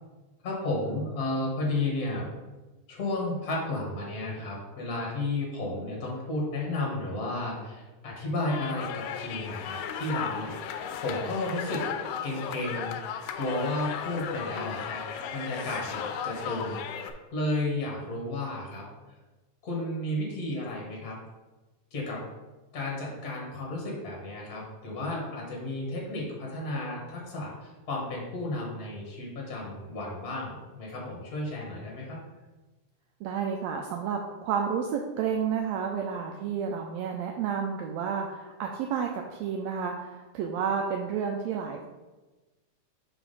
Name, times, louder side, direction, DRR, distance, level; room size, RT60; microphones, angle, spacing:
voice 1, 0.4-2.3 2.9-10.5 11.0-11.9 12.2-12.9 13.3-15.0 15.3-16.8 17.3-18.8 19.6-21.2 21.9-22.2 22.7-32.2, left 2 dB, 50° left, -2 dB, 1.1 m, -32 dB
sound 1, 8.5-17.1, left 8 dB, 90° left, 2.1 m, -36 dB
voice 2, 33.2-41.9, right 7 dB, 90° right, 2 dB, 1.5 m, -31 dB
6.1 x 3.3 x 5.3 m, 1.2 s
omnidirectional pair, 3.6 m